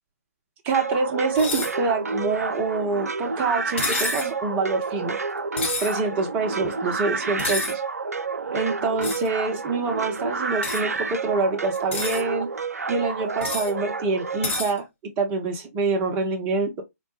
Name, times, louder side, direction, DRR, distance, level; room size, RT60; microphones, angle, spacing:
voice 1, 0.6-5.2 5.8-7.8 8.5-12.5 12.9-16.8, right 3 dB, 20° right, 0.7 m, -26 dB
sound 1, 0.7-14.6, right 4 dB, 70° right, 0.5 m, -29 dB
sound 2, 1.3-1.7 3.8-4.3 5.6-5.9 7.4-7.7 9.0-9.3 10.6-10.8 11.7-12.2 13.4-13.7 14.4-14.7, left 4 dB, 50° left, 1.1 m, -29 dB
4.3 x 2.1 x 3.0 m
figure-of-eight pair, 140°, 9 cm